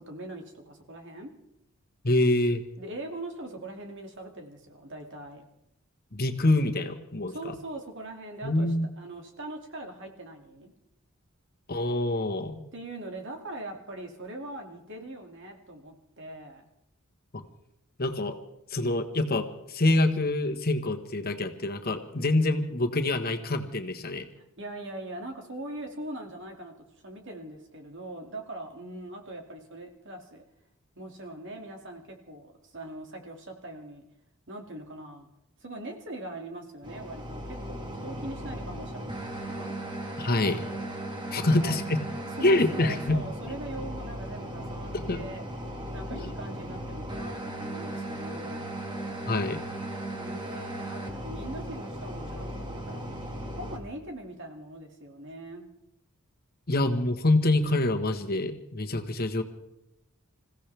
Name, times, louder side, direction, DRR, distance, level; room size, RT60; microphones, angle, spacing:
voice 1, 0.0-1.3 2.8-5.4 7.3-8.7 9.0-10.7 12.7-16.7 24.3-30.4 31.0-34.0 34.5-35.3 35.6-39.7 41.4-41.8 42.4-45.4 45.9-48.8 50.1-53.0 53.5-55.7, right 1 dB, 60° right, 3 dB, 2.4 m, -41 dB
voice 2, 2.0-2.6 6.1-7.5 8.4-8.9 11.7-12.6 17.3-17.4 18.0-18.4 18.7-24.3 40.2-40.6 41.3-42.0 42.4-43.2 44.9-45.2 46.1-46.3 49.3-49.6 56.7-59.4, left 2 dB, 45° left, 6 dB, 1.3 m, -26 dB
sound 1, 36.8-53.8, right 1 dB, 20° right, 2.0 m, -37 dB
27.0 x 15.5 x 3.4 m, 0.83 s
head